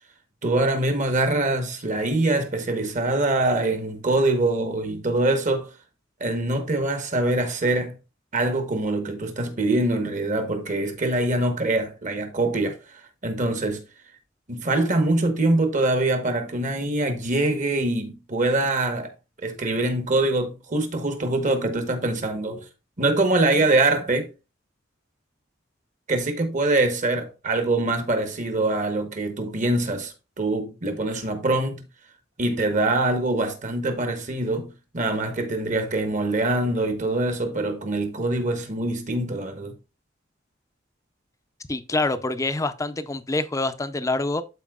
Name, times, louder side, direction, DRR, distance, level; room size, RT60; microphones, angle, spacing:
voice 1, 0.4-5.7 6.2-8.0 8.3-13.8 14.5-19.1 19.4-22.6 23.0-24.3 26.1-31.8 32.4-39.7, right 2 dB, 40° right, 1.2 m, -24 dB
voice 2, 41.7-44.4, left 2 dB, 15° left, 0.5 m, -26 dB
12.5 x 4.4 x 2.4 m
head